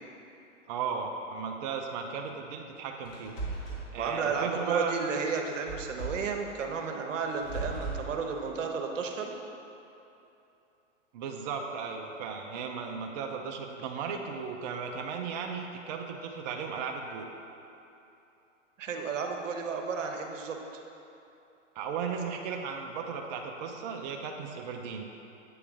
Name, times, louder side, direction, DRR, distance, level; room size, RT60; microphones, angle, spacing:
voice 1, 0.7-3.4 3.9-4.9 11.1-17.3 21.8-25.1, right 6 dB, 35° right, 2 dB, 0.4 m, -36 dB
sound 1, 3.1-3.9 5.7-6.3 7.3-8.1, right 3 dB, 35° left, 1.4 m, -37 dB
voice 2, 4.0-9.3 18.8-20.6, right 5 dB, 80° right, 3 dB, 0.8 m, -32 dB
8.5 x 3.3 x 3.7 m, 2.9 s
hypercardioid pair, 125°, 37 cm